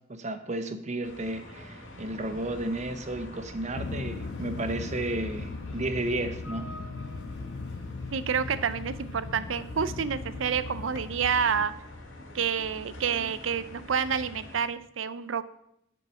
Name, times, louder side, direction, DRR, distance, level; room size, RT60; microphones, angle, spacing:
voice 1, 0.1-6.8, right 2 dB, 40° right, 9 dB, 0.9 m, -33 dB
sound 1, 1.0-14.6, left 1 dB, 80° left, 2.1 m, -45 dB
sound 2, 1.9-14.6, equal, 65° right, 2.9 m, -49 dB
sound 3, 3.7-11.7, left 4 dB, 60° left, 0.4 m, -39 dB
voice 2, 8.1-11.7 12.3-15.4, right 6 dB, 85° right, 14 dB, 0.6 m, -28 dB
7.7 x 7.1 x 6.2 m, 0.75 s
head